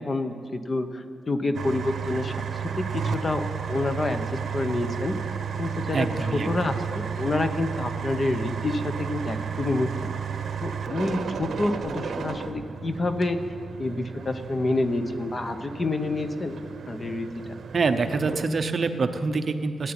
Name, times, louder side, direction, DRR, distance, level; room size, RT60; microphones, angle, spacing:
voice 1, 0.0-5.1 5.6-10.1 10.6-13.4 13.8-16.6 16.9-17.6, left 2 dB, 30° left, 8 dB, 0.9 m, -28 dB
sound 1, 1.5-18.5, right 7 dB, 65° right, 1.1 m, -33 dB
voice 2, 5.9-6.5 17.7-19.9, right 4 dB, 40° right, 8 dB, 0.8 m, -25 dB
15.5 x 9.2 x 8.9 m, 2.2 s
wide cardioid pair, 155°, 0 cm